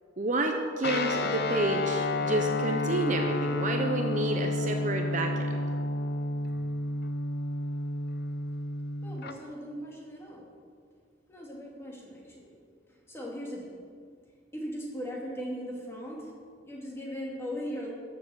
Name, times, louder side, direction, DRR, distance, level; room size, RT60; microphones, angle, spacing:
voice 1, 0.2-5.7, right 1 dB, 40° right, 3 dB, 0.8 m, -30 dB
Guitar, 0.8-9.3, left 2 dB, 55° left, 0.7 m, -31 dB
voice 2, 9.0-10.5 11.3-12.6 12.9-13.7 14.5-16.3 16.6-17.9, equal, 15° left, -3 dB, 2.5 m, -38 dB
13.5 x 7.0 x 7.0 m, 2.1 s
head